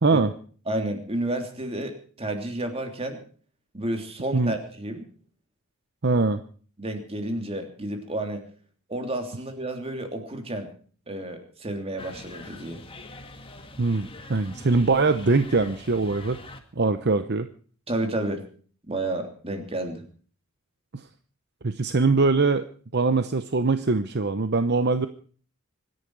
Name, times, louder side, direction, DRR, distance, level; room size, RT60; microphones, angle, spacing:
voice 1, 0.0-0.3 4.3-4.5 6.0-6.4 13.8-16.4 16.8-17.5 20.9-21.0 21.6-22.7 22.9-25.1, right 3 dB, 50° right, 10 dB, 0.8 m, -22 dB
voice 2, 0.7-3.2 3.7-5.0 6.8-8.4 8.9-10.7 11.1-12.8 17.9-18.4 18.9-20.0, right 1 dB, 25° right, 5 dB, 3.1 m, -31 dB
sound 1, 12.0-16.6, left 2 dB, 25° left, 2.0 m, -44 dB
25.5 x 10.5 x 4.7 m, 0.43 s
head